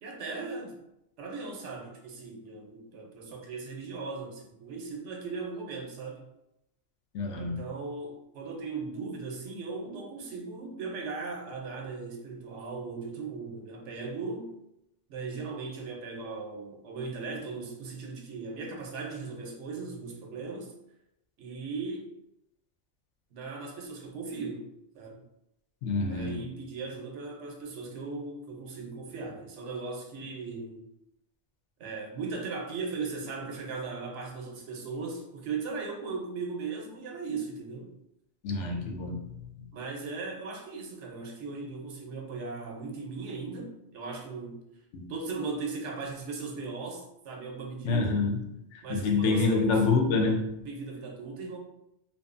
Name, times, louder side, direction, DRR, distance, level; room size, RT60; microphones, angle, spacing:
voice 1, 0.0-0.7 1.2-6.3 7.3-14.5 15.1-20.7 21.4-22.1 23.3-24.7 24.9-25.2 26.1-30.9 31.8-37.9 39.7-44.6 45.1-48.3 48.8-49.8 50.6-51.6, right 4 dB, 85° right, 0 dB, 0.9 m, -38 dB
voice 2, 7.1-7.6 25.8-26.3 38.4-39.2 44.9-45.1 47.8-48.4 48.7-50.5, left 3 dB, 85° left, 1 dB, 0.9 m, -26 dB
2.5 x 2.3 x 2.4 m, 0.84 s
omnidirectional pair, 1.2 m